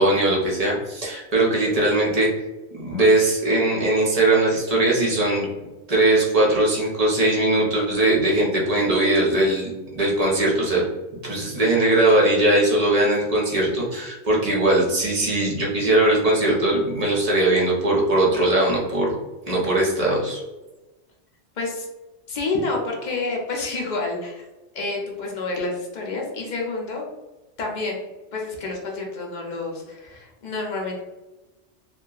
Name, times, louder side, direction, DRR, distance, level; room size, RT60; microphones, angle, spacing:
voice 1, 0.0-2.3 2.7-5.5 5.9-10.8 11.2-19.1 19.5-20.4, right 2 dB, 40° right, -3 dB, 0.7 m, -20 dB
voice 2, 21.6-21.9 22.3-24.4 24.7-27.0 27.6-28.0 28.3-31.0, left 3 dB, 50° left, -1 dB, 0.6 m, -28 dB
2.8 x 2.3 x 2.3 m, 1.1 s
omnidirectional pair, 1.2 m